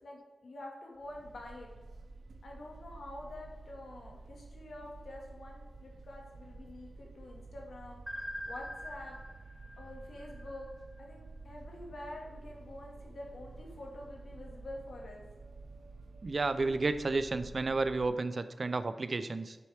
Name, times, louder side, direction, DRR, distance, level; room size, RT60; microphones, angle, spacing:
voice 1, 0.0-1.7 2.4-8.0 8.5-9.2 9.8-10.7 11.0-15.2, left 1 dB, 85° left, -1 dB, 1.8 m, -47 dB
sound 1, 0.9-18.1, right 3 dB, 80° right, 0.7 m, -51 dB
sound 2, 8.1-11.0, equal, 5° left, 0.8 m, -44 dB
voice 2, 16.2-19.6, right 3 dB, 45° right, 11 dB, 0.4 m, -31 dB
7.7 x 6.4 x 3.4 m, 1.3 s
wide cardioid pair, 125°, 0 cm